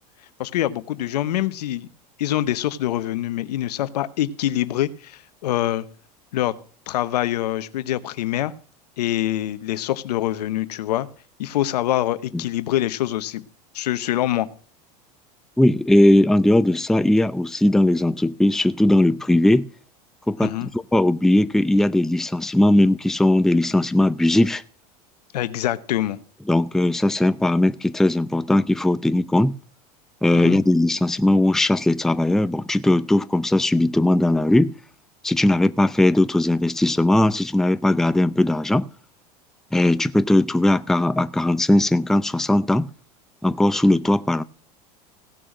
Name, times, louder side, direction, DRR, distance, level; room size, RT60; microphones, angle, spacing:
voice 1, 0.4-1.9 2.2-5.9 6.3-6.5 6.9-8.5 9.0-11.1 11.4-13.4 13.7-14.5 20.4-20.7 25.3-26.2 30.3-30.6, left 13 dB, 85° left, 0.9 m, -25 dB
voice 2, 15.6-19.7 20.3-24.6 26.5-29.5 30.2-34.7 35.2-38.9 39.7-42.9 43.4-44.4, left 1 dB, ahead, 0.5 m, -19 dB
16.5 x 6.3 x 6.0 m
hypercardioid pair, 105°, 20 cm